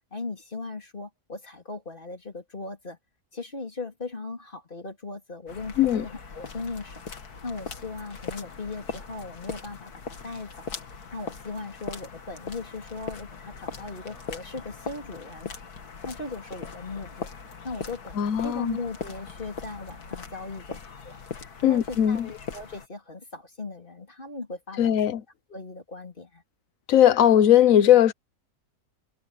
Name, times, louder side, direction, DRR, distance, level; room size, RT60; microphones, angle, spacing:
voice 1, 0.1-3.0 3.3-7.1 7.4-10.7 11.1-15.5 16.1-17.3 17.6-21.2 21.6-25.2 25.5-26.4, left 3 dB, 35° left, 3.9 m, -38 dB
sound 1, 5.5-22.9, left 5 dB, 80° left, 2.3 m, -40 dB
voice 2, 18.2-18.8 21.6-22.3 24.8-25.2 26.9-28.1, left 11 dB, 65° left, 1.3 m, -19 dB
omnidirectional pair, 1.6 m